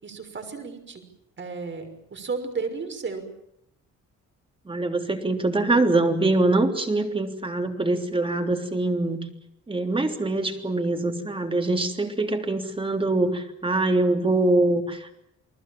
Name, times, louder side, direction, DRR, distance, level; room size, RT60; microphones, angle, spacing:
voice 1, 0.0-1.0 1.4-3.3, right 4 dB, 40° right, 6 dB, 6.0 m, -33 dB
voice 2, 4.7-9.2 9.7-15.1, right 2 dB, 15° right, 5 dB, 3.4 m, -24 dB
29.5 x 19.5 x 7.4 m, 0.78 s
cardioid pair, 120°, 30 cm